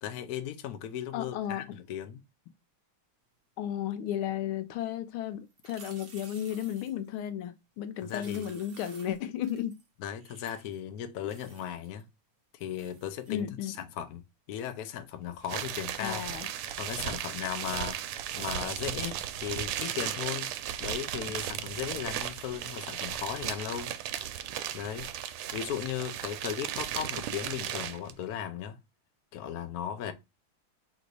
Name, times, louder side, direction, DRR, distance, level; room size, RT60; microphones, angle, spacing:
voice 1, 0.0-2.2 8.0-8.5 10.0-12.0 12.6-16.2 16.8-18.0 18.3-20.5 20.8-23.9 24.7-28.8 29.3-30.1, left 10 dB, 70° left, 0.9 m, -37 dB
voice 2, 1.1-1.8 3.6-9.8 13.3-13.7 16.0-16.5, left 10 dB, 85° left, 1.5 m, -34 dB
sound 1, 5.5-7.1 8.0-9.9 10.2-10.8 11.3-12.0 12.6-13.4 18.5-18.6, right 4 dB, 50° right, 0.6 m, -53 dB
sound 2, 15.4-28.1, right 10 dB, 90° right, 1.5 m, -36 dB
4.0 x 2.6 x 4.6 m
omnidirectional pair, 2.3 m